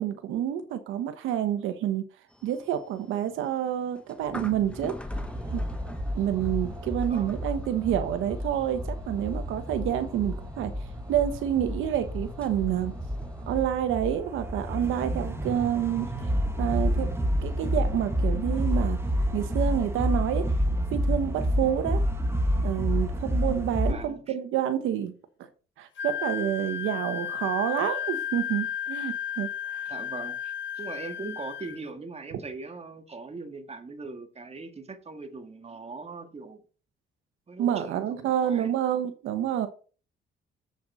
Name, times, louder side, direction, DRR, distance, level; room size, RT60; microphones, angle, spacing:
voice 1, 0.0-2.0 2.4-4.9 5.5-5.6 6.1-10.7 11.1-12.9 13.5-16.3 16.6-17.1 17.4-19.0 19.3-20.5 20.9-22.0 22.6-25.1 25.8-29.9 37.6-39.7, right 10 dB, 90° right, 1.1 m, -28 dB
sound 1, 2.3-13.6, left 1 dB, 5° left, 1.2 m, -44 dB
sound 2, 5.1-23.9, equal, 10° right, 1.5 m, -29 dB
voice 2, 23.9-24.4 29.9-36.6 37.5-38.7, right 3 dB, 30° right, 1.8 m, -40 dB
Wind instrument woodwind instrument, 26.0-31.8, left 9 dB, 70° left, 1.4 m, -33 dB
7.7 x 7.0 x 4.9 m
cardioid pair, 90°, 20 cm